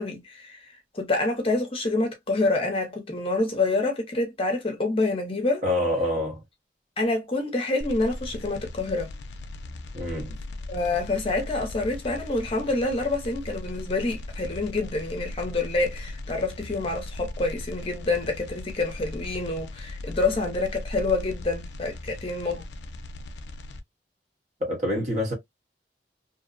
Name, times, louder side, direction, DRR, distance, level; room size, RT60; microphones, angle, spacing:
voice 1, 0.0-5.6 7.0-9.1 10.7-22.6, left 2 dB, 30° left, 0.6 m, -27 dB
voice 2, 5.6-6.4 9.9-10.4 24.6-25.3, left 1 dB, 40° right, 1.0 m, -26 dB
sound 1, 7.8-23.8, left 1 dB, 75° left, 0.4 m, -38 dB
2.6 x 2.0 x 2.4 m
head